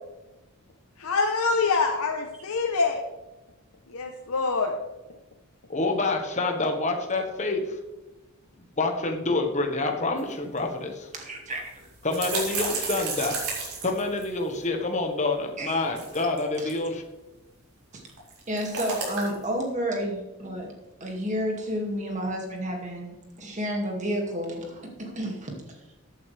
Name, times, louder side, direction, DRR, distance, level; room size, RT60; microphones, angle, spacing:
voice 1, 1.0-3.0 3.9-4.7, left 4 dB, 75° left, 3 dB, 0.9 m, -25 dB
voice 2, 5.7-7.8 8.8-11.1 12.0-13.4 13.8-17.0, left 2 dB, 35° left, 3 dB, 1.4 m, -27 dB
sound 1, 10.2-10.3 10.6-10.7 11.5-14.7 15.7-16.8 18.1-19.5, right 4 dB, 85° right, 4.2 m, -32 dB
voice 3, 11.1-11.8 15.6-15.8 16.6-16.7 17.9-18.0 18.5-20.7 21.0-25.9, equal, 35° right, 1 dB, 2.2 m, -31 dB
14.5 x 9.0 x 3.4 m, 1.0 s
head